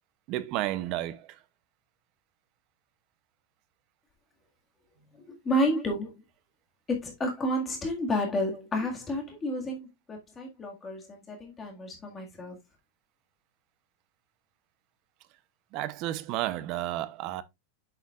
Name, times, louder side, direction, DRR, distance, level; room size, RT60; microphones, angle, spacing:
voice 1, 0.3-1.4 15.7-17.4, right 14 dB, 30° right, 0.6 m, -32 dB
voice 2, 5.3-6.2 7.0-12.6, equal, 10° left, 1.8 m, -31 dB
7.7 x 6.8 x 2.4 m
supercardioid pair, 180°, 0 cm